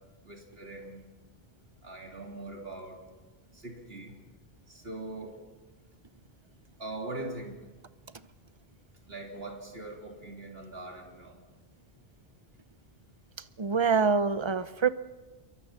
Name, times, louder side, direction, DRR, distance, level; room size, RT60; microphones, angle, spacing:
voice 1, 0.2-1.0 1.8-3.0 3.5-4.1 4.7-5.4 6.8-7.6 9.1-11.4, right 2 dB, 65° right, 1 dB, 3.8 m, -41 dB
voice 2, 13.6-14.9, right 5 dB, 30° right, 13 dB, 0.7 m, -25 dB
28.0 x 23.5 x 5.9 m, 1.3 s
omnidirectional pair, 1.1 m